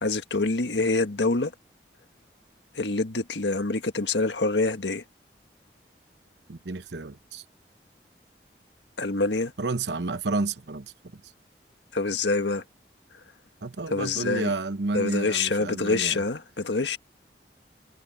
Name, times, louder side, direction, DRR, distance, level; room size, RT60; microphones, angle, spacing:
voice 1, 0.0-1.5 2.7-5.0 9.0-9.5 11.9-12.6 13.9-14.5 14.9-17.0, left 3 dB, 85° left, 1.6 m, -26 dB
voice 2, 6.5-7.4 9.6-11.2 13.6-16.2, right 3 dB, 80° right, 0.9 m, -31 dB
head